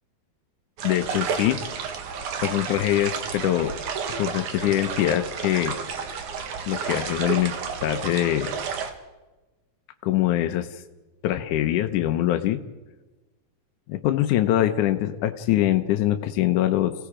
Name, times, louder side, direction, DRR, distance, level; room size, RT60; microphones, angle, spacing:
voice 1, 0.8-1.6 2.4-3.7 4.2-5.8 6.7-7.5 7.8-8.6 10.0-10.8 11.2-12.6 13.9-16.9, left 13 dB, 80° left, 7 dB, 2.3 m, -23 dB
sound 1, 0.8-8.9, right 6 dB, 75° right, 3.0 m, -31 dB
29.5 x 17.5 x 5.0 m, 1.1 s
omnidirectional pair, 3.6 m